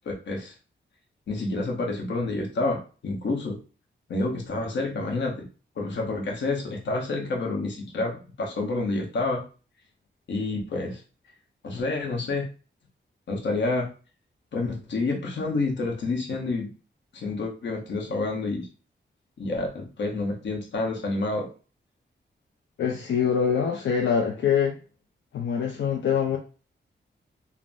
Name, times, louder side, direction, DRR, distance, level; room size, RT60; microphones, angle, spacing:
voice 1, 0.0-0.5 1.3-3.6 4.1-5.4 5.8-9.4 10.3-11.0 11.6-12.5 13.3-13.9 14.5-16.7 17.1-18.7 19.4-21.5, left 3 dB, 70° left, 1 dB, 0.8 m, -28 dB
voice 2, 22.8-24.7 25.3-26.4, left 7 dB, 90° left, 1 dB, 0.5 m, -24 dB
3.4 x 2.1 x 2.5 m, 0.36 s
wide cardioid pair, 180°, 19 cm